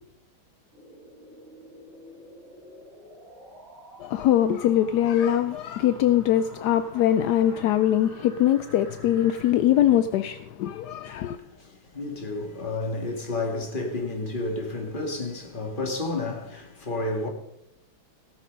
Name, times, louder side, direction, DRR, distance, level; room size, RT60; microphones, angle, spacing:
sound 1, 0.7-9.5, equal, 30° right, 4.5 m, -49 dB
voice 1, 4.0-11.4, left 11 dB, 75° left, 0.9 m, -22 dB
voice 2, 11.3-17.3, left 2 dB, 25° left, 1.8 m, -31 dB
17.0 x 6.6 x 5.3 m
omnidirectional pair, 2.2 m